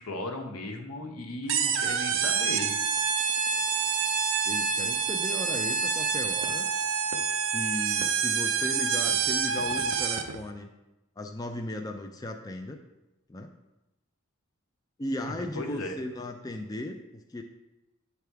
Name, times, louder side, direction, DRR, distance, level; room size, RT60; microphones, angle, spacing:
voice 1, 0.0-2.7 15.5-15.9, left 2 dB, 90° left, 3 dB, 1.0 m, -36 dB
sound 1, 1.5-10.4, right 6 dB, 65° right, 0.5 m, -27 dB
voice 2, 4.4-6.7 7.5-10.7 11.2-12.8 13.3-13.5 15.0-17.4, left 1 dB, 15° left, 4 dB, 0.3 m, -36 dB
9.2 x 3.5 x 4.6 m, 0.98 s
head